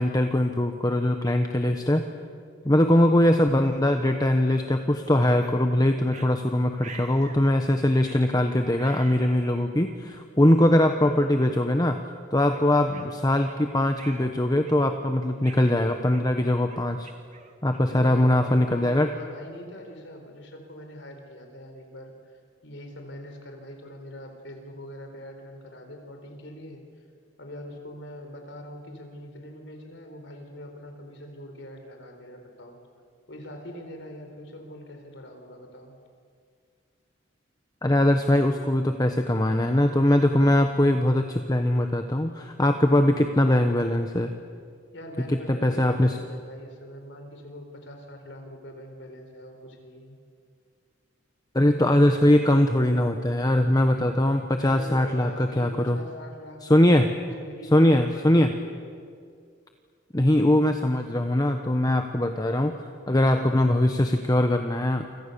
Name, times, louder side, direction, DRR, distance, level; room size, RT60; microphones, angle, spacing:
voice 1, 0.0-2.0 2.6-12.0 12.3-17.1 17.6-19.1 37.8-44.3 45.3-46.2 51.5-56.0 56.7-57.1 57.7-58.5 60.1-62.7 63.1-65.1, left 1 dB, 20° left, 5 dB, 1.2 m, -21 dB
sound 1, 4.5-4.6 5.4-5.6 6.1-6.3 6.8-7.4 8.0-8.3 8.7-9.7 10.4-10.5 11.2-11.4 11.8-12.0 12.5-13.6 13.9-14.3 14.6-15.0 15.4-18.0, right 4 dB, 40° right, 2.4 m, -47 dB
voice 2, 17.9-27.0 27.4-32.8 33.3-35.9 44.9-50.2 54.6-58.8, left 1 dB, 70° left, 4 dB, 4.5 m, -43 dB
29.0 x 26.0 x 7.0 m, 2.2 s
head